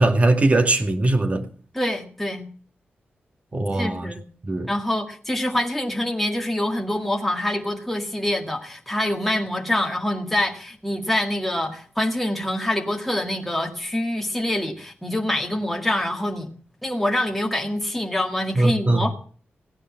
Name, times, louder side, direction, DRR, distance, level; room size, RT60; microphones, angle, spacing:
voice 1, 0.0-1.4 3.5-4.1 4.5-4.7 18.6-19.1, right 2 dB, 35° right, 2.2 m, -20 dB
voice 2, 1.7-2.5 3.7-4.2 4.7-16.5 16.8-19.2, left 1 dB, 5° left, 1.9 m, -25 dB
16.5 x 9.9 x 7.3 m
wide cardioid pair, 100°, 4 cm